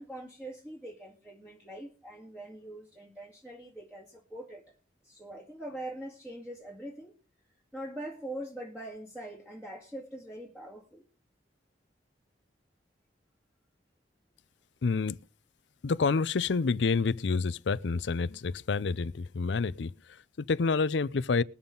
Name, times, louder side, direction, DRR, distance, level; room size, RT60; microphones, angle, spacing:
voice 1, 0.0-4.6 5.0-7.1 7.7-11.0, right 1 dB, 10° right, 2.1 m, -43 dB
voice 2, 14.8-15.2 15.8-21.4, left 4 dB, 70° left, 0.5 m, -28 dB
21.0 x 7.1 x 3.9 m
head